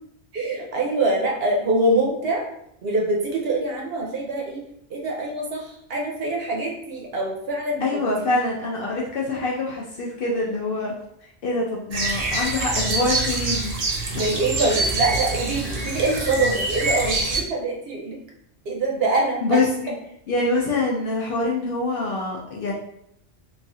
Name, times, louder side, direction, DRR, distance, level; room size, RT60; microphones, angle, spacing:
voice 1, 0.3-2.4 2.8-4.6 4.9-8.5 14.2-18.2 18.7-19.6, right 2 dB, 60° right, -1 dB, 0.8 m, -24 dB
voice 2, 7.8-10.9 11.4-13.7 14.1-14.3 19.4-19.9 20.3-22.7, left 2 dB, 60° left, -3 dB, 0.6 m, -25 dB
sound 1, 11.9-17.4, right 2 dB, 90° right, 0.3 m, -25 dB
3.0 x 2.4 x 2.6 m, 0.72 s
omnidirectional pair, 1.2 m